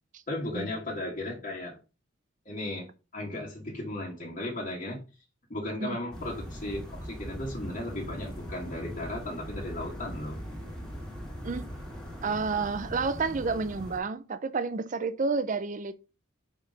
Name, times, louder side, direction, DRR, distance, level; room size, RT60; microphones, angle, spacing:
voice 1, 0.3-1.8 2.5-2.9 3.1-5.0 5.5-10.4, left 1 dB, 40° left, 1.6 m, -35 dB
sound 1, 6.1-14.0, equal, 5° left, 1.6 m, -40 dB
voice 2, 12.2-16.0, right 4 dB, 40° right, 0.5 m, -30 dB
5.2 x 4.1 x 4.9 m
head